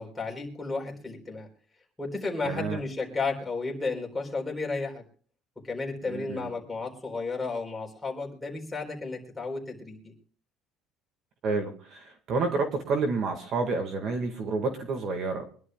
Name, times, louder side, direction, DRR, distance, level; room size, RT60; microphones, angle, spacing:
voice 1, 0.0-1.5 2.0-5.0 5.6-10.1, left 3 dB, 10° left, -1 dB, 4.0 m, -33 dB
voice 2, 2.4-2.8 6.1-6.5 11.4-15.4, right 4 dB, 45° right, 5 dB, 1.8 m, -29 dB
24.5 x 11.0 x 2.3 m, 0.43 s
cardioid pair, 150°, 0 cm